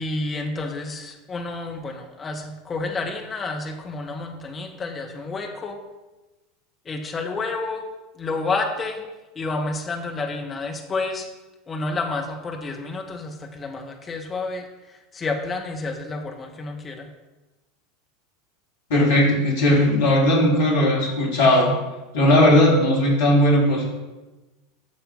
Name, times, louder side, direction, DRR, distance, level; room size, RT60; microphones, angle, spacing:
voice 1, 0.0-5.8 6.8-7.8 8.1-9.0 9.3-11.3 11.7-17.1, left 3 dB, 25° left, 2 dB, 1.6 m, -30 dB
voice 2, 18.9-21.7 22.1-23.8, left 1 dB, 60° left, -2 dB, 3.1 m, -17 dB
11.0 x 6.7 x 4.1 m, 1.1 s
figure-of-eight pair, 80°, 0 cm